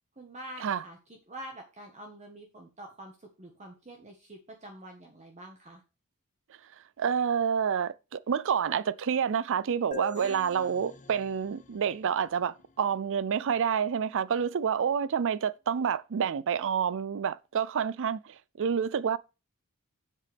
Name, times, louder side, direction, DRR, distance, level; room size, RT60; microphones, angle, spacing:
voice 1, 0.2-5.8 10.1-10.7, right 1 dB, 30° right, 1.4 m, -47 dB
voice 2, 7.0-19.2, right 7 dB, 60° right, 0.4 m, -28 dB
sound 1, 9.9-13.4, left 5 dB, 35° left, 1.0 m, -47 dB
9.0 x 7.7 x 3.4 m
head